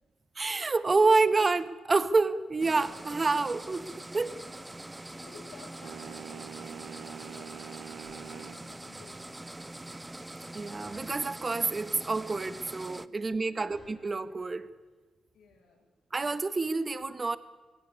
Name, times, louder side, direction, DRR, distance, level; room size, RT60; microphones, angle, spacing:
voice 1, 0.3-3.9 4.1-4.4 10.5-14.7 16.1-17.4, right 3 dB, 35° right, 13 dB, 1.5 m, -28 dB
sound 1, 2.6-13.1, right 1 dB, 15° right, 0.8 m, -44 dB
voice 2, 5.1-6.5 6.9-9.3 13.0-13.7 15.3-15.9, left 4 dB, 85° left, -1 dB, 7.8 m, -54 dB
sound 2, 5.8-8.6, right 9 dB, 75° right, 0.6 m, -44 dB
sound 3, 6.4-14.6, left 1 dB, 35° left, 4.8 m, -58 dB
21.0 x 17.0 x 9.8 m, 1.4 s
cardioid pair, 60°, 0 cm